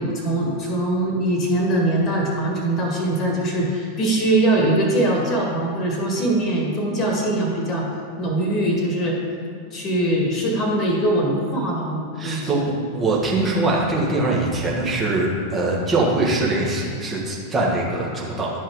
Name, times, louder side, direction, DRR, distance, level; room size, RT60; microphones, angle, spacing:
voice 1, 0.0-7.9 8.2-9.2 9.7-12.5, right 1 dB, 30° left, -1 dB, 1.6 m, -22 dB
voice 2, 12.2-18.5, right 2 dB, 20° right, -4 dB, 1.6 m, -22 dB
11.5 x 5.3 x 3.6 m, 2.5 s
figure-of-eight pair, 90°, 0 cm